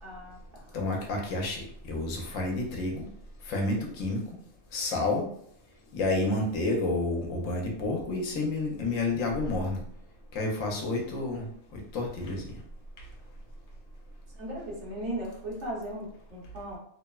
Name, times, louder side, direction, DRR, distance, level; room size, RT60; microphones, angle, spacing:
voice 1, 0.0-0.6 14.4-16.8, right 1 dB, 65° right, -5 dB, 1.2 m, -37 dB
voice 2, 0.7-3.1 3.5-4.2 4.7-5.3 5.9-9.8 10.3-11.5 11.7-12.5, left 2 dB, 85° left, 1 dB, 1.0 m, -30 dB
2.9 x 2.0 x 2.2 m, 0.65 s
omnidirectional pair, 1.3 m